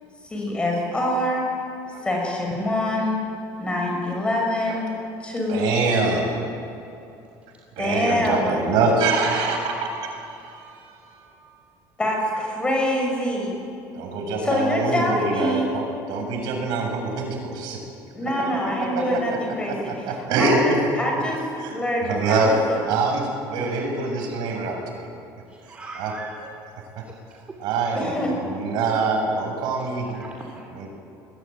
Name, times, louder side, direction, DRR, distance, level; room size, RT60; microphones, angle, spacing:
voice 1, 0.2-1.5 2.0-3.2 3.6-4.9 5.2-5.7 6.1-6.2 7.8-8.5 12.0-13.5 14.4-15.7 18.1-22.8 27.9-28.3, left 1 dB, 10° left, 0 dB, 6.7 m, -25 dB
voice 2, 5.5-6.4 7.8-10.9 11.2-11.3 13.9-17.8 18.9-19.4 19.7-20.6 21.6-21.7 22.1-22.6 22.9-25.1 25.6-26.1 27.0-27.1 27.6-30.1 30.7-30.9, right 3 dB, 65° right, 2 dB, 7.5 m, -25 dB
voice 3, 25.5-26.5 27.0-27.1 27.5-27.6 30.0-30.9, right 3 dB, 15° right, 0 dB, 3.0 m, -41 dB
30.0 x 21.5 x 9.2 m, 2.7 s
cardioid pair, 165°, 8 cm